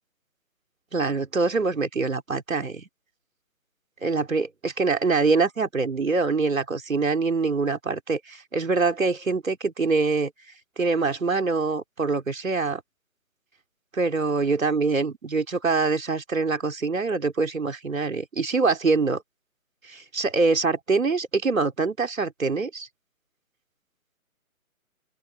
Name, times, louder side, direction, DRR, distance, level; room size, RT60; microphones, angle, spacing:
voice 1, 0.9-2.9 4.0-10.3 10.8-12.8 13.9-19.2 19.9-22.9, right 4 dB, 65° right, 4.5 m, -24 dB
open air
figure-of-eight pair, 140°, 43 cm